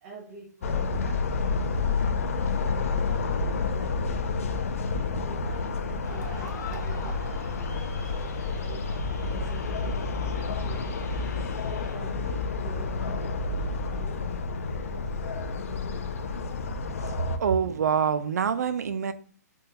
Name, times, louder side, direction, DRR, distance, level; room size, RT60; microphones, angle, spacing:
voice 1, 0.0-1.3 1.5-4.1 4.6-11.2 11.8-15.3, right 3 dB, 25° right, 0.6 m, -47 dB
sound 1, 0.6-17.4, left 4 dB, 50° left, 0.3 m, -29 dB
sound 2, 6.0-11.9, left 3 dB, 75° left, 0.9 m, -44 dB
voice 2, 17.4-19.1, right 7 dB, 70° right, 0.4 m, -25 dB
3.5 x 2.2 x 2.8 m
hypercardioid pair, 175°, 9 cm